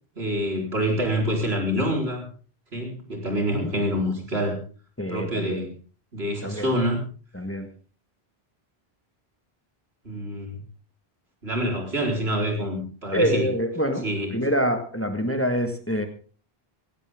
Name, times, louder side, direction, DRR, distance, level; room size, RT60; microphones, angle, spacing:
voice 1, 0.2-2.2 2.7-4.6 5.1-5.7 6.1-7.0 10.0-10.6 11.4-13.5 14.0-14.4, equal, 80° right, 1 dB, 4.7 m, -26 dB
voice 2, 5.0-5.6 6.4-6.7 7.3-7.7 13.1-16.1, equal, 15° left, 6 dB, 1.7 m, -26 dB
17.0 x 16.5 x 3.7 m, 0.39 s
omnidirectional pair, 1.1 m